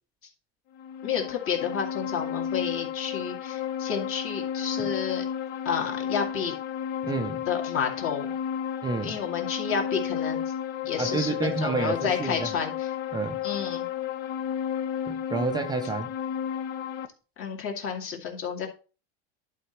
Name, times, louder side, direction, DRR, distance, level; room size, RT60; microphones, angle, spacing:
sound 1, 0.8-17.1, left 9 dB, 60° left, 1.0 m, -32 dB
voice 1, 1.0-5.3 5.6-6.5 7.5-8.3 9.0-10.4 10.9-12.9 13.4-13.9 17.4-18.7, left 7 dB, 40° left, 2.3 m, -30 dB
voice 2, 7.0-7.4 8.8-9.1 11.0-12.5 13.1-13.4 15.1-16.1, right 4 dB, 15° right, 0.5 m, -29 dB
11.0 x 4.0 x 4.4 m
supercardioid pair, 125°, 32 cm